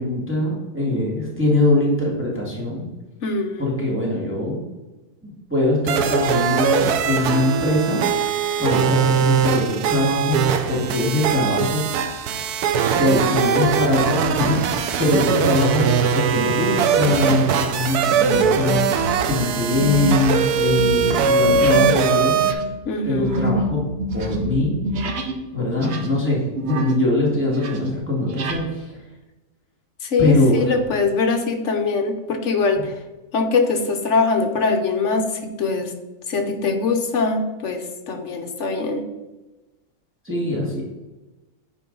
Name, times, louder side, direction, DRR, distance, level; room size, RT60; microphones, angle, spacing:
voice 1, 0.0-2.9 3.6-4.6 5.2-8.0 8.6-11.8 12.9-18.8 19.3-22.4 23.0-23.8 24.1-24.7 25.5-28.9 30.2-30.8 32.8-32.9 40.2-40.8, left 2 dB, 10° right, -4 dB, 1.6 m, -22 dB
voice 2, 3.2-3.6 22.9-23.4 30.1-32.9 33.3-35.3 35.6-35.9 36.3-39.0, left 4 dB, 55° left, 5 dB, 1.1 m, -22 dB
sound 1, 5.9-22.5, right 6 dB, 90° right, 1.2 m, -21 dB
sound 2, 16.5-16.7 17.3-17.5 18.1-18.6 18.8-25.4 25.7-27.1 27.4-28.6, right 1 dB, 55° right, 1.0 m, -28 dB
8.9 x 4.8 x 3.9 m, 1.1 s
omnidirectional pair, 1.6 m